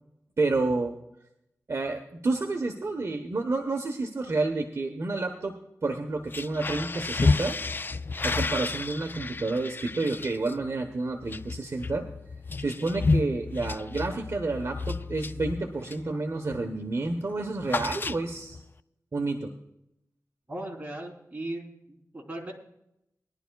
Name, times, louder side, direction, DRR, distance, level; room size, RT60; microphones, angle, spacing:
voice 1, 0.4-1.0 1.7-5.5 5.8-7.5 8.2-12.0 12.6-18.6 19.1-19.5, right 3 dB, 55° right, 3 dB, 1.1 m, -29 dB
sound 1, 6.2-16.1 16.5-16.8 17.0-18.6, left 3 dB, 35° left, 0.3 m, -31 dB
voice 2, 20.5-21.6 21.9-22.5, right 1 dB, 25° right, -1 dB, 3.6 m, -37 dB
21.0 x 11.5 x 2.3 m, 0.81 s
wide cardioid pair, 105°, 6 cm